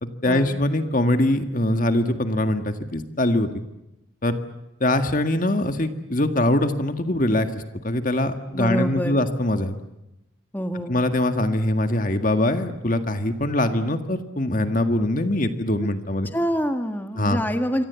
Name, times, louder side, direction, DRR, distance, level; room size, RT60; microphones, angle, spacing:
voice 1, 0.0-3.5 4.2-4.4 4.8-9.7 10.9-16.3 17.2-17.4, left 1 dB, 40° left, 7 dB, 1.8 m, -23 dB
voice 2, 8.5-9.2 10.5-11.0 15.8-15.9 16.3-17.8, equal, 10° left, 6 dB, 1.8 m, -26 dB
27.5 x 24.5 x 8.3 m, 0.92 s
head